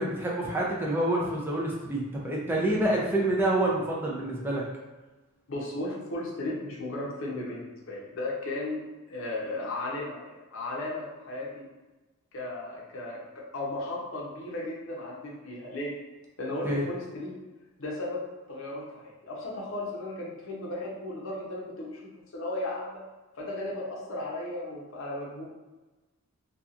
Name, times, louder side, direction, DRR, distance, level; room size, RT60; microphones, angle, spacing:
voice 1, 0.0-4.6 16.6-16.8, right 1 dB, 10° right, -4 dB, 0.4 m, -27 dB
voice 2, 5.5-8.8 9.1-11.6 12.3-15.9 16.4-17.3 17.8-18.2 18.5-23.0 23.4-25.4, left 2 dB, 60° left, -4 dB, 0.7 m, -35 dB
2.7 x 2.3 x 2.4 m, 1.2 s
head